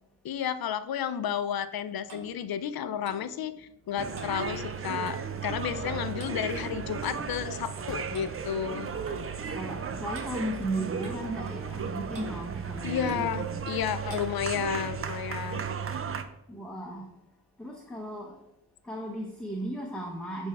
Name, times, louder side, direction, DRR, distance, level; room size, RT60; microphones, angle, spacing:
voice 1, 0.2-8.9 12.8-15.7, left 9 dB, 60° left, 12 dB, 0.5 m, -32 dB
Clock, 1.5-5.4 5.6-5.9 6.2-7.2 8.1-8.3 9.1-9.2 10.1-10.3 11.0-11.8 12.1-12.4 13.1-13.3 14.1-14.3, right 3 dB, 50° right, 1.4 m, -48 dB
sound 1, 4.0-16.2, right 6 dB, 35° right, 0.5 m, -35 dB
voice 2, 8.7-9.1 9.5-13.6 16.5-17.1 17.6-18.4 18.8-20.5, right 1 dB, ahead, -1 dB, 0.8 m, -36 dB
8.2 x 3.5 x 4.8 m, 0.85 s
cardioid pair, 110°, 40 cm